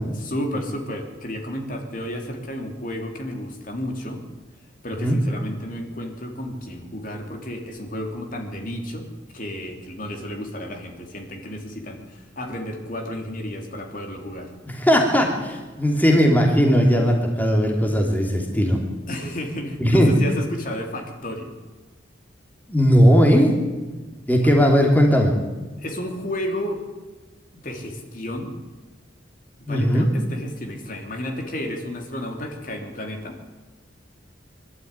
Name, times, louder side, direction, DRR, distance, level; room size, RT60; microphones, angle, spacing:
voice 1, 0.0-4.2 4.8-9.1 9.3-14.5 19.1-21.5 24.3-24.6 25.8-26.8 27.5-28.5 29.6-33.5, equal, 45° left, 3 dB, 3.3 m, -32 dB
voice 2, 14.7-18.8 19.8-20.1 22.7-23.5 24.3-25.3 29.7-30.1, equal, 10° left, 0 dB, 3.0 m, -18 dB
25.0 x 12.5 x 9.8 m, 1.3 s
head